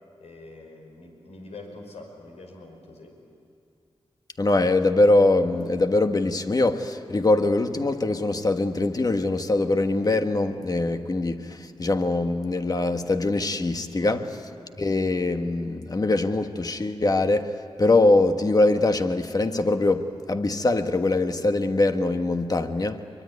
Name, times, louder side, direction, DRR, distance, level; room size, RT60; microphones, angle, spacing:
voice 1, 0.2-3.2 14.0-14.3, left 2 dB, 85° left, 5.5 m, -44 dB
voice 2, 4.4-14.3 14.8-23.0, left 2 dB, 35° left, 1.4 m, -23 dB
24.5 x 23.5 x 9.7 m
cardioid pair, 75°, 11 cm